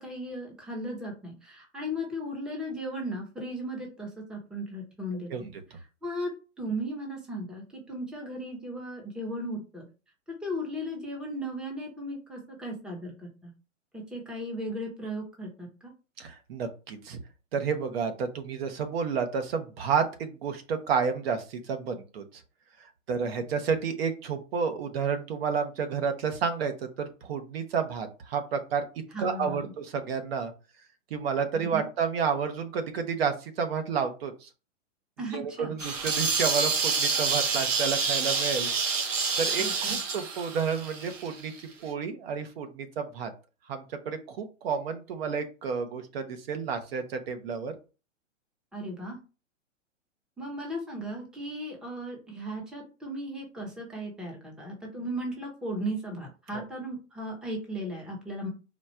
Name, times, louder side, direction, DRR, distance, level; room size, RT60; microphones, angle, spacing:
voice 1, 0.0-5.3 6.0-6.3 6.6-9.8 10.3-13.5 13.9-15.9 29.1-29.7 31.5-31.8 35.2-35.8 39.6-40.0 48.7-49.2 50.4-58.5, equal, ahead, 0 dB, 0.8 m, -36 dB
voice 2, 16.2-17.2 17.5-22.2 23.1-26.7 27.0-28.8 29.2-30.5 31.1-34.5 35.3-38.7 39.4-43.3 43.7-47.7 56.5-56.6, right 6 dB, 50° right, 7 dB, 1.0 m, -30 dB
sound 1, 35.8-41.6, right 5 dB, 75° right, 1.3 m, -28 dB
4.2 x 2.4 x 4.3 m, 0.32 s
hypercardioid pair, 140°, 38 cm